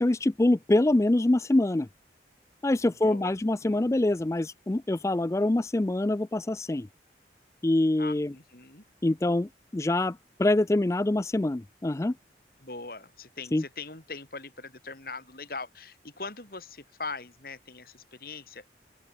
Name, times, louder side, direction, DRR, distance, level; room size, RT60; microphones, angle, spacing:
voice 1, 0.0-1.9 2.6-6.9 7.6-8.3 9.0-12.1 13.5-13.6, left 1 dB, 15° left, 0.4 m, -25 dB
voice 2, 2.9-3.4 3.6-3.9 8.0-8.8 12.6-18.6, left 3 dB, 55° left, 3.5 m, -41 dB
open air
head